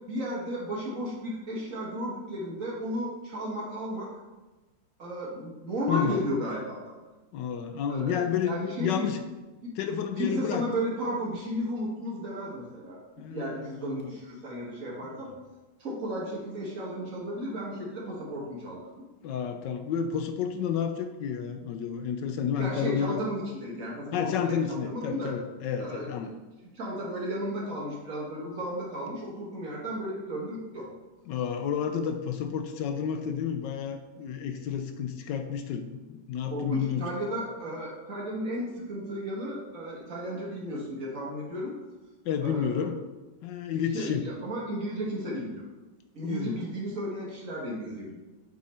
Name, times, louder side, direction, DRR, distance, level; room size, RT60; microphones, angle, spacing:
voice 1, 0.1-4.1 5.0-6.9 7.9-9.1 9.6-9.7 10.2-13.0 13.3-15.3 15.8-19.0 22.6-25.3 25.8-26.1 26.7-30.9 36.5-41.7 42.4-42.9 43.9-45.6 46.1-48.2, equal, 50° right, -4 dB, 1.7 m, -34 dB
voice 2, 5.9-6.2 7.3-9.2 9.8-10.6 13.2-14.0 15.0-15.1 19.2-23.2 24.1-26.3 31.3-37.0 42.2-43.0 43.4-44.3 46.2-46.6, left 8 dB, 75° left, 7 dB, 1.2 m, -30 dB
8.2 x 3.7 x 4.2 m, 1.1 s
omnidirectional pair, 2.0 m